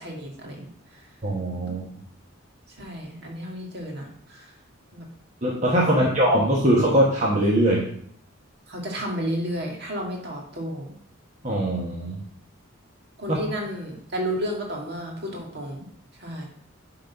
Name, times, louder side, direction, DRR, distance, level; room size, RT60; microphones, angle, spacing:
voice 1, 0.0-1.1 2.7-4.5 4.9-5.1 6.0-6.3 8.7-10.9 13.2-15.9 16.1-16.5, equal, 50° right, 0 dB, 2.0 m, -32 dB
voice 2, 1.2-1.8 5.4-7.9 11.4-12.2 13.3-13.4, right 1 dB, 35° right, -4 dB, 1.2 m, -21 dB
8.4 x 4.0 x 5.7 m, 0.63 s
head